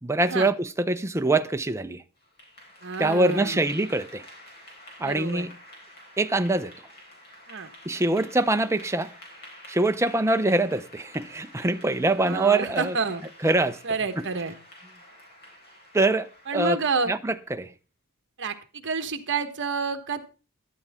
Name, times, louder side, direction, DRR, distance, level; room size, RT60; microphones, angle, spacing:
voice 1, 0.0-2.0 3.0-4.2 5.0-5.5 6.2-6.7 7.9-9.1 9.7-13.0 13.4-13.8 14.2-14.3 15.9-16.8 17.1-17.7, right 2 dB, 10° right, 0.6 m, -24 dB
Clapping / Applause, 2.2-17.4, left 1 dB, 45° left, 5.1 m, -49 dB
voice 2, 2.8-3.6 5.0-5.5 7.5-7.7 12.2-13.2 13.8-14.5 16.5-17.1 18.4-20.3, right 4 dB, 55° right, 1.4 m, -29 dB
13.0 x 12.0 x 3.6 m
head